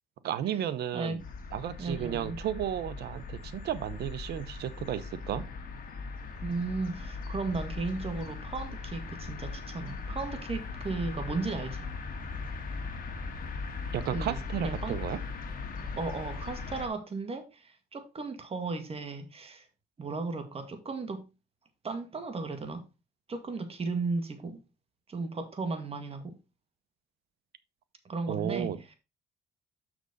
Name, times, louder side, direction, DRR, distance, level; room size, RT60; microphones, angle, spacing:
voice 1, 0.2-1.2 1.5-5.5 13.9-15.2 28.3-28.8, right 10 dB, 70° right, 0.9 m, -33 dB
sound 1, 1.2-16.9, left 4 dB, 55° left, 1.9 m, -39 dB
voice 2, 1.8-2.4 6.4-11.9 14.1-15.0 16.0-19.7 20.0-21.3 21.8-22.8 23.3-24.6 25.1-26.3 28.1-28.9, right 3 dB, 35° right, 1.8 m, -35 dB
6.3 x 6.2 x 4.0 m
cardioid pair, 90°, 17 cm